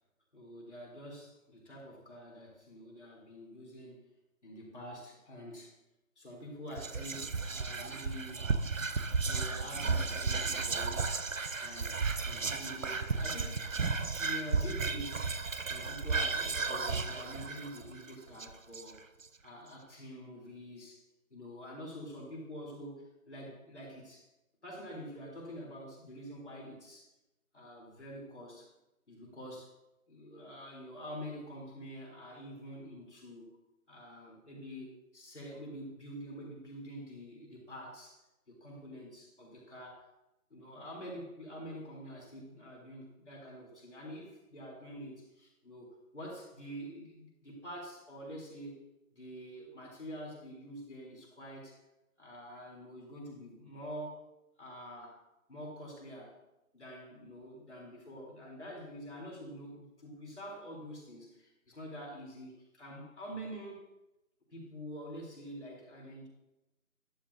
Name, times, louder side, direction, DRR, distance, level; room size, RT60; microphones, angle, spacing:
voice 1, 0.3-4.1 4.4-5.7 6.2-8.5 9.1-11.2 11.6-13.7 14.1-15.3 15.6-19.0 19.4-21.1 21.3-24.3 24.6-27.1 27.5-28.7 29.1-29.7 30.1-33.6 33.9-40.1 40.5-48.8 49.1-51.8 52.2-54.2 54.6-55.2 55.5-56.4 56.7-63.8 64.5-66.3, equal, 50° left, -3 dB, 3.6 m, -46 dB
Whispering, 6.7-19.2, right 4 dB, 60° right, 0.8 m, -34 dB
11.5 x 9.1 x 2.7 m, 0.95 s
figure-of-eight pair, 170°, 44 cm